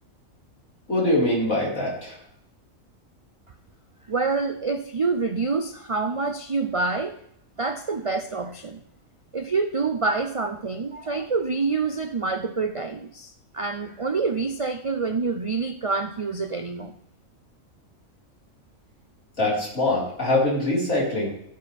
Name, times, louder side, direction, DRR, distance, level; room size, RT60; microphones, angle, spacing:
voice 1, 0.9-2.1 19.4-21.3, left 1 dB, 80° left, -5 dB, 5.0 m, -23 dB
voice 2, 4.1-7.2 7.6-8.8 9.3-16.9, right 4 dB, 60° right, 8 dB, 0.3 m, -27 dB
16.0 x 9.5 x 3.5 m, 0.73 s
omnidirectional pair, 1.4 m